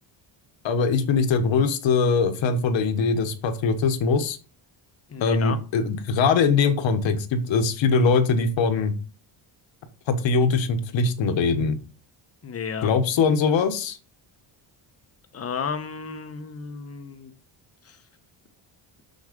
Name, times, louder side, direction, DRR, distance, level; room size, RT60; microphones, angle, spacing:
voice 1, 0.6-4.4 5.2-8.9 10.1-11.8 12.8-14.0, left 4 dB, 65° left, 1.4 m, -22 dB
voice 2, 5.1-5.6 12.4-12.9 15.3-17.3 17.8-18.0, left 6 dB, 30° left, 1.0 m, -32 dB
6.6 x 6.4 x 5.2 m
cardioid pair, 155°, 47 cm